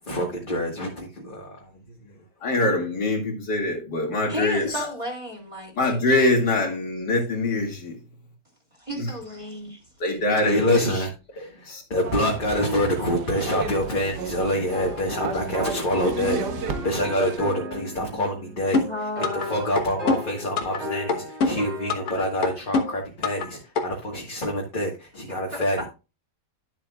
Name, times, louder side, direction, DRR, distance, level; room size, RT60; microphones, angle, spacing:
voice 1, 0.0-1.8 2.1-2.2 2.4-2.6 10.4-25.8, left 1 dB, 30° left, 1.7 m, -27 dB
voice 2, 2.4-4.9 5.8-8.0 9.0-9.1 10.0-11.0 11.7-11.8, left 2 dB, 75° left, 2.9 m, -24 dB
voice 3, 4.3-5.7 8.8-9.8 18.9-19.8 25.3-25.4, left 1 dB, 15° right, 3.1 m, -33 dB
sound 1, 12.0-17.4, right 5 dB, 75° right, 1.6 m, -33 dB
sound 2, 14.7-22.0, left 1 dB, 40° right, 2.5 m, -36 dB
sound 3, 18.7-19.5 19.8-20.8 21.1-22.1 22.4-23.5 23.8-23.9, left 4 dB, 60° left, 1.7 m, -24 dB
11.5 x 7.5 x 2.4 m
omnidirectional pair, 1.8 m